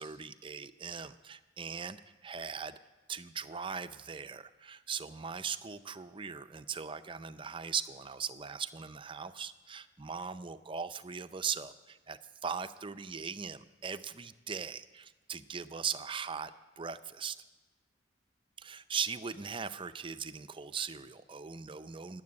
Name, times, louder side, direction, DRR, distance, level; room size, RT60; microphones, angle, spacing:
voice 1, 0.0-2.8 3.1-17.4 18.6-22.2, right 6 dB, 30° right, 11 dB, 0.5 m, -39 dB
20.5 x 7.7 x 8.6 m, 1.2 s
head